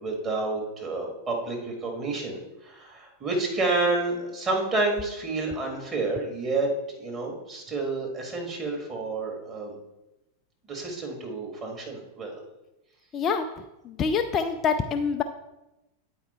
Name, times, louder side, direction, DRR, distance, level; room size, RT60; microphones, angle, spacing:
voice 1, 0.0-6.7 7.0-9.8 10.7-12.3, right 3 dB, 25° right, 0 dB, 2.1 m, -29 dB
voice 2, 13.1-13.4 13.8-15.2, left 6 dB, 25° left, 6 dB, 0.4 m, -25 dB
8.8 x 4.7 x 4.5 m, 0.97 s
figure-of-eight pair, 90°, 0 cm